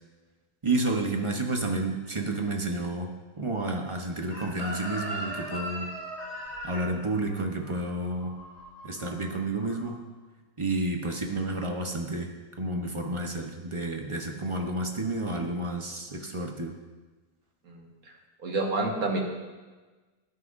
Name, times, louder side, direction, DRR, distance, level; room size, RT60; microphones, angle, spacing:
voice 1, 0.6-5.9 6.6-8.4 8.8-10.0 10.6-16.7, right 2 dB, 30° right, 2 dB, 0.6 m, -30 dB
Chicken rooster, 4.3-9.2 9.5-9.9, right 1 dB, 60° left, 5.1 m, -38 dB
voice 2, 18.4-19.2, right 2 dB, 55° right, 0 dB, 2.0 m, -28 dB
18.5 x 9.6 x 2.6 m, 1.3 s
omnidirectional pair, 1.9 m